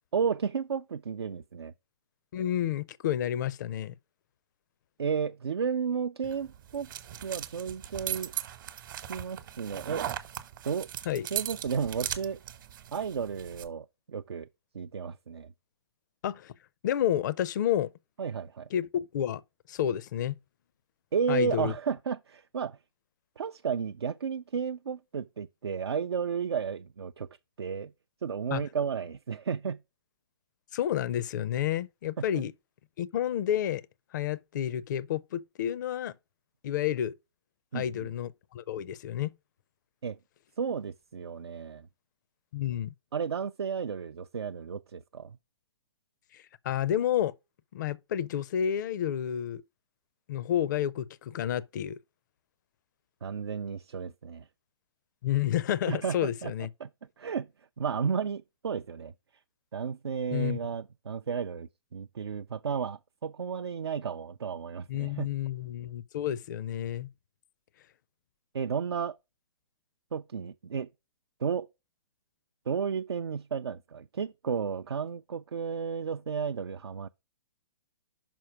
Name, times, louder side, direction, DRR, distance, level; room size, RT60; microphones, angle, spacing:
voice 1, 0.1-1.7 5.0-6.9 7.2-8.3 9.1-10.2 10.6-10.9 11.3-12.4 12.9-14.5 14.7-15.5 18.2-18.7 21.1-22.8 23.4-27.3 27.6-27.9 28.2-29.8 32.2-32.4 37.7-38.1 40.0-40.2 40.6-41.9 43.1-45.4 53.2-54.5 55.9-56.5 56.8-56.9 57.2-57.5 57.8-59.1 59.7-65.3 68.5-69.2 70.1-70.9 71.4-71.7 72.7-77.1, right 6 dB, 75° right, 0.4 m, -33 dB
voice 2, 2.3-3.9 11.1-11.3 16.2-16.5 16.8-17.9 18.7-19.4 19.7-20.4 21.3-21.7 28.5-28.6 30.7-32.5 33.0-33.8 34.1-36.1 36.6-37.1 37.7-39.3 42.5-42.9 46.3-47.3 47.7-49.6 50.3-52.0 55.2-56.7 60.3-60.6 64.9-67.1, left 10 dB, 45° left, 0.4 m, -30 dB
sound 1, 6.2-13.7, right 11 dB, 50° right, 1.0 m, -38 dB
6.0 x 4.4 x 4.7 m
figure-of-eight pair, 120°, 13 cm